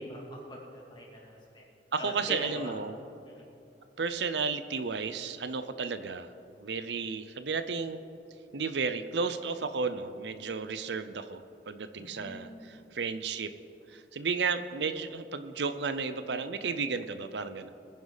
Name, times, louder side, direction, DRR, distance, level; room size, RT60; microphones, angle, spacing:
voice 1, 0.0-1.6 2.0-2.7 3.3-3.4 11.9-12.7, left 1 dB, 25° left, -3 dB, 2.7 m, -42 dB
voice 2, 1.9-3.0 4.0-6.3 6.6-8.0 8.5-13.5 13.9-17.7, right 5 dB, 75° right, 11 dB, 0.6 m, -33 dB
22.0 x 10.0 x 4.1 m, 2.7 s
head